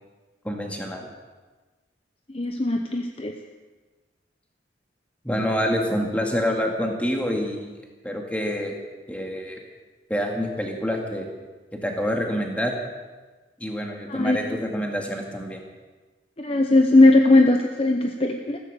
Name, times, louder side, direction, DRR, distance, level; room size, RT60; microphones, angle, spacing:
voice 1, 0.4-1.1 5.2-7.7 8.0-8.7 9.1-9.6 10.1-11.3 11.8-12.7 13.6-15.6, equal, 5° left, 1 dB, 2.1 m, -27 dB
voice 2, 2.3-3.3 14.1-14.4 16.4-18.6, left 2 dB, 30° left, 4 dB, 0.8 m, -18 dB
15.0 x 14.0 x 6.9 m, 1.3 s
head